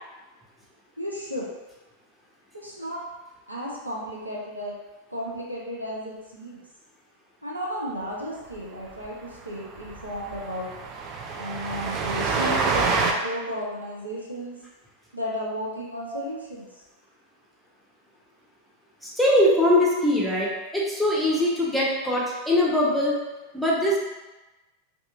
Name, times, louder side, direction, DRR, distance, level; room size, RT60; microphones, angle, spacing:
voice 1, 1.0-1.5 2.5-3.0 3.5-4.7 5.1-6.6 7.4-10.7 11.3-14.6 15.1-16.8, equal, 85° right, -4 dB, 0.5 m, -34 dB
Train, 8.6-8.7 8.9-9.1 9.3-9.4 9.8-13.1, right 4 dB, 35° right, 0.3 m, -27 dB
voice 2, 19.0-23.1 23.5-24.0, left 1 dB, ahead, -6 dB, 0.6 m, -22 dB
2.7 x 2.3 x 2.5 m, 1.1 s
figure-of-eight pair, 90°, 0 cm